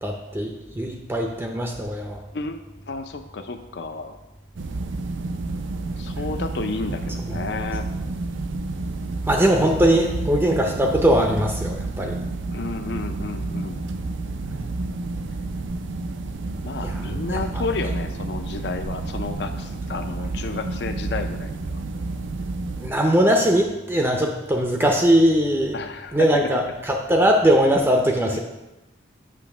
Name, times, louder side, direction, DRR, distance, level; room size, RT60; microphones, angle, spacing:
voice 1, 0.0-2.2 9.2-12.2 14.4-14.6 16.8-17.0 22.8-25.8 26.1-28.4, equal, 10° right, 2 dB, 0.5 m, -20 dB
voice 2, 2.3-4.2 6.0-7.9 12.5-13.8 16.6-21.8 25.7-26.5 28.3-28.4, left 3 dB, 60° left, 7 dB, 0.5 m, -31 dB
sound 1, 4.6-22.9, right 3 dB, 80° right, 0.5 m, -30 dB
8.3 x 3.0 x 5.9 m, 1.0 s
head